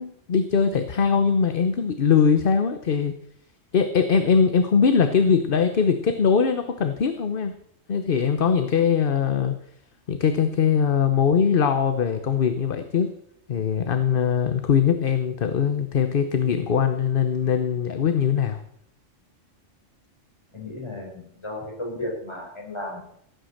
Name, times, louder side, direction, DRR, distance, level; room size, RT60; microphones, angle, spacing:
voice 1, 0.0-3.2 3.7-7.5 7.9-9.5 10.1-13.1 13.5-18.6, left 6 dB, 50° left, 9 dB, 1.0 m, -21 dB
voice 2, 20.5-23.0, left 1 dB, 20° left, -2 dB, 5.6 m, -34 dB
16.0 x 9.1 x 6.5 m, 0.70 s
omnidirectional pair, 1.3 m